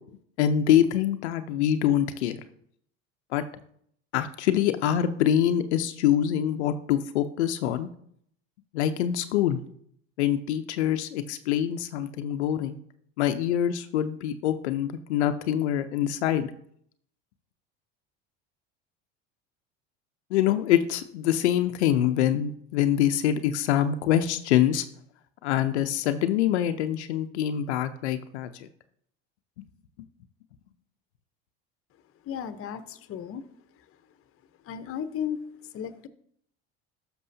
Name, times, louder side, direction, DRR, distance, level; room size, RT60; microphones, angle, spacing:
voice 1, 0.4-2.4 3.3-3.4 4.1-7.9 8.7-9.6 10.2-12.8 13.2-16.5 20.3-24.8 25.4-28.7, left 10 dB, 85° left, 9 dB, 0.7 m, -25 dB
voice 2, 32.2-33.4 34.7-35.4 35.7-36.1, left 8 dB, 45° left, 11 dB, 0.9 m, -34 dB
12.5 x 6.1 x 2.7 m, 0.65 s
hypercardioid pair, 85°, 33 cm